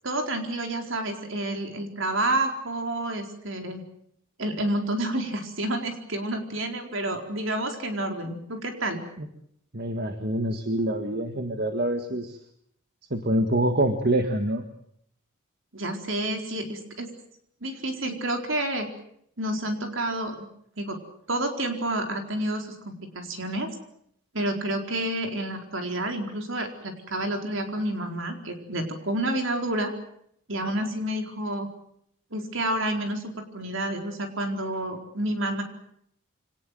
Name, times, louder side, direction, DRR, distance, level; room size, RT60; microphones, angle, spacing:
voice 1, 0.0-3.8 4.4-9.0 15.7-17.1 17.6-18.9 19.4-20.5 20.8-21.0 21.3-23.7 24.3-29.9 30.5-31.7 32.3-35.6, right 1 dB, 65° right, 4 dB, 4.3 m, -29 dB
voice 2, 9.7-12.4 13.1-14.6, right 1 dB, 50° right, 6 dB, 1.7 m, -26 dB
25.5 x 18.5 x 9.2 m, 0.71 s
head